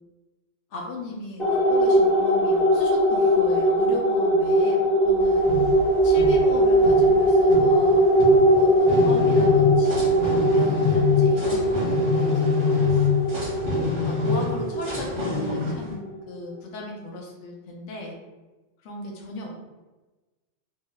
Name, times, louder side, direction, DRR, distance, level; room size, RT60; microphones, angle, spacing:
voice 1, 0.7-5.5 6.0-8.1 8.5-13.1 13.7-18.1 18.8-19.6, left 2 dB, 75° left, 0 dB, 0.9 m, -37 dB
sound 1, 1.4-16.2, right 1 dB, ahead, 0.7 m, -20 dB
sound 2, 5.2-15.9, left 6 dB, 45° right, 0.6 m, -26 dB
2.8 x 2.0 x 2.2 m, 1.2 s
omnidirectional pair, 1.3 m